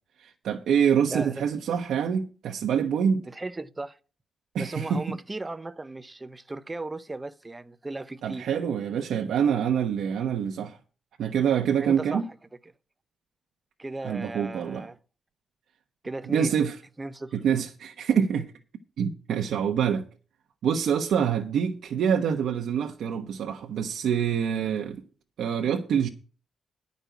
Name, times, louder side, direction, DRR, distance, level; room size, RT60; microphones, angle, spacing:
voice 1, 0.2-3.3 4.5-5.2 8.2-10.8 11.2-12.2 14.0-14.8 16.3-16.8 17.3-18.5 19.0-20.1 20.6-25.0 25.4-26.1, right 8 dB, 80° right, 0.9 m, -26 dB
voice 2, 1.1-1.4 1.7-1.8 3.3-4.0 4.6-8.5 11.8-12.2 13.8-15.0 16.0-16.6 17.0-17.4, right 2 dB, 15° right, 0.5 m, -36 dB
10.5 x 5.3 x 8.2 m
wide cardioid pair, 155°, 0 cm